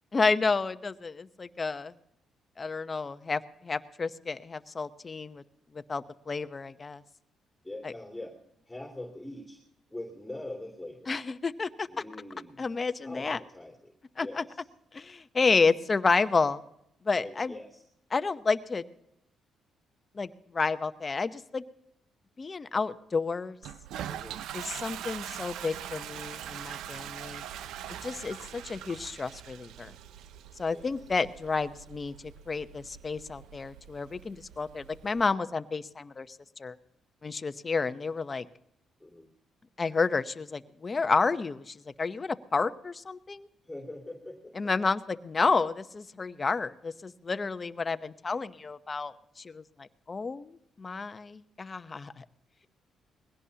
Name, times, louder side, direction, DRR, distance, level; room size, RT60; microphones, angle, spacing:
voice 1, 0.1-1.9 2.6-5.4 5.7-7.0 11.1-11.9 12.6-13.4 14.2-14.4 14.9-16.6 17.0-17.5 18.1-18.9 20.1-21.6 22.4-23.6 24.5-27.4 28.0-29.9 30.6-32.1 32.5-36.8 37.2-38.5 39.8-43.5 44.6-52.2, left 4 dB, 30° left, 11 dB, 0.8 m, -30 dB
voice 2, 7.6-8.4 8.7-9.6 9.9-11.1 11.9-12.7 13.0-14.7 17.2-17.8 24.1-24.4 30.7-31.1 39.0-39.3 43.6-44.5, left 1 dB, 5° left, 0 dB, 2.9 m, -43 dB
Toilet flush, 23.6-35.2, right 10 dB, 85° right, 0.5 m, -43 dB
21.5 x 17.0 x 2.9 m, 0.78 s
cardioid pair, 90°, 0 cm